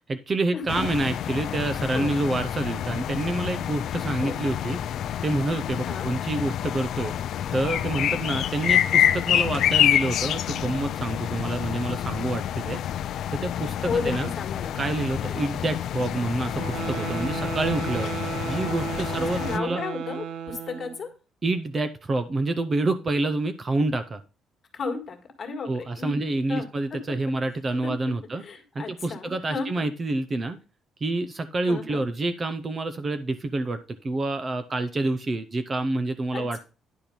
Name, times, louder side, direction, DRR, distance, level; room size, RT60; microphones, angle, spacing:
voice 1, 0.1-4.8 5.2-7.1 7.5-12.8 13.3-14.3 14.8-18.1 18.5-19.8 21.4-24.2 25.7-28.4 28.7-30.6 31.0-36.6, right 2 dB, 25° right, 9 dB, 0.6 m, -27 dB
sound 1, 0.7-19.6, left 10 dB, 55° left, 0.4 m, -27 dB
voice 2, 4.0-4.4 5.8-6.1 13.8-14.8 19.1-21.1 24.7-26.2 26.5-27.2 27.8-27.9 28.4-29.9 31.7-32.0 36.3-36.6, left 4 dB, 35° left, 4 dB, 1.7 m, -33 dB
sound 2, 16.5-21.0, right 8 dB, 75° right, 0.7 m, -34 dB
10.0 x 4.5 x 5.2 m, 0.33 s
cardioid pair, 170°, 0 cm